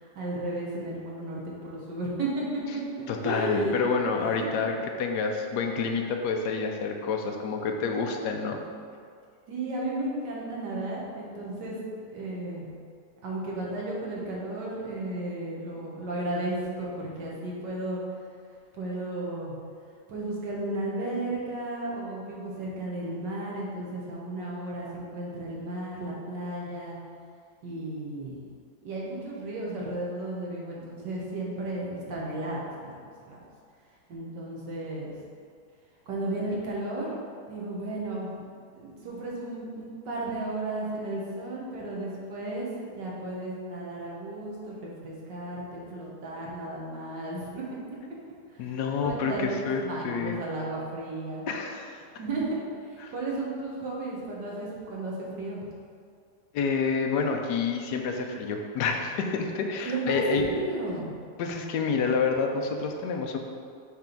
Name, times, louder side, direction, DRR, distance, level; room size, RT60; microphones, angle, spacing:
voice 1, 0.0-2.4 3.2-3.8 4.1-4.5 9.5-11.8 12.1-12.7 13.2-18.0 18.7-19.5 20.1-27.0 27.6-28.4 28.8-33.4 34.1-35.1 36.1-37.1 37.5-38.4 38.8-47.6 48.5-48.7 49.0-51.4 52.2-52.6 52.8-55.6 59.9-61.1, right 2 dB, 85° right, -4 dB, 2.0 m, -34 dB
voice 2, 3.1-8.6 48.6-50.4 51.5-52.0 53.0-53.1 56.5-60.5 61.4-63.4, left 5 dB, 75° left, 3 dB, 1.2 m, -28 dB
6.5 x 3.4 x 5.9 m, 2.2 s
omnidirectional pair, 1.8 m